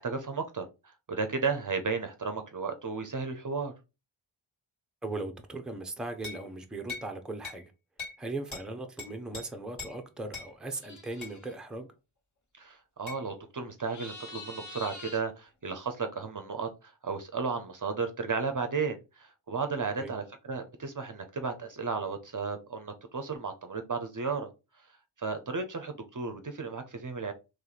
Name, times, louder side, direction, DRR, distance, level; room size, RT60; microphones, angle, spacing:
voice 1, 0.0-3.7 12.6-24.5 24.8-24.9 25.2-27.3, right 4 dB, 40° right, 0.6 m, -34 dB
voice 2, 5.0-7.7 8.2-11.9 20.0-20.1, right 2 dB, ahead, 0.6 m, -38 dB
sound 1, 6.2-6.5 6.9-7.1 7.4-7.6 8.0-8.2 8.5-8.7 9.0-9.4 9.8-10.0 10.3-10.5 11.2-11.4 13.1-13.2, left 4 dB, 70° left, 2.2 m, -40 dB
sound 2, 10.7-11.5 13.8-15.2, left 3 dB, 35° left, 1.1 m, -45 dB
3.1 x 3.0 x 4.0 m
wide cardioid pair, 95°, 49 cm